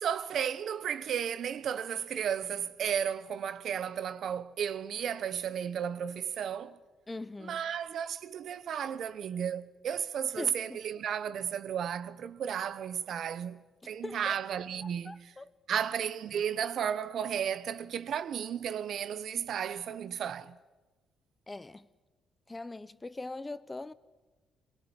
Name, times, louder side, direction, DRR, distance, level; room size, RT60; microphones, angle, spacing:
voice 1, 0.0-6.8 7.4-15.3 15.7-20.6, right 8 dB, 65° right, 1.1 m, -34 dB
voice 2, 7.1-7.6 10.4-10.6 13.8-14.3 15.0-15.5 21.5-21.9 22.5-23.9, left 2 dB, 20° left, 0.9 m, -41 dB
22.5 x 22.0 x 9.9 m
cardioid pair, 90°, 0 cm